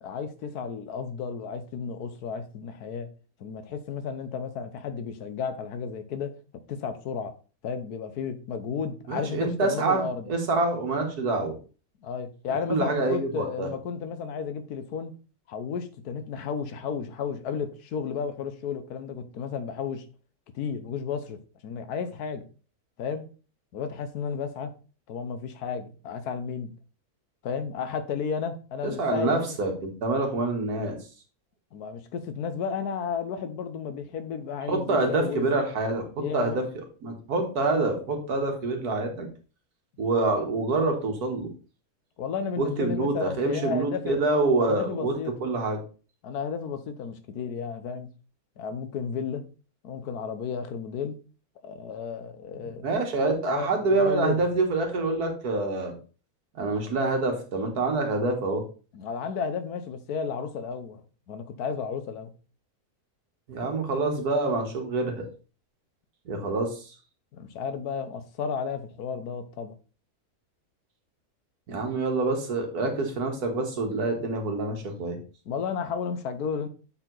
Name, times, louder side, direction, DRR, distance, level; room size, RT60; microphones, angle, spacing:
voice 1, 0.0-3.1 3.4-6.3 6.7-7.3 7.6-10.3 12.0-15.1 15.5-20.0 20.5-21.4 21.6-22.4 23.0-23.3 23.7-24.7 25.1-26.7 27.4-29.6 31.7-35.5 36.2-36.6 42.2-44.2 44.6-45.3 46.2-48.1 48.6-49.4 49.8-51.2 51.6-52.8 53.4-54.4 58.9-61.0 61.3-62.3 67.3-69.7 75.4-76.7, left 6 dB, 85° left, 1.4 m, -33 dB
voice 2, 9.1-11.6 12.7-13.7 28.8-31.0 34.7-36.1 36.3-36.6 37.0-39.3 40.0-41.5 42.6-45.1 45.4-45.8 52.6-55.9 56.6-58.6 63.5-65.3 66.3-66.9 71.7-75.2, right 3 dB, 85° right, 2.0 m, -26 dB
7.5 x 4.7 x 3.9 m
omnidirectional pair, 1.6 m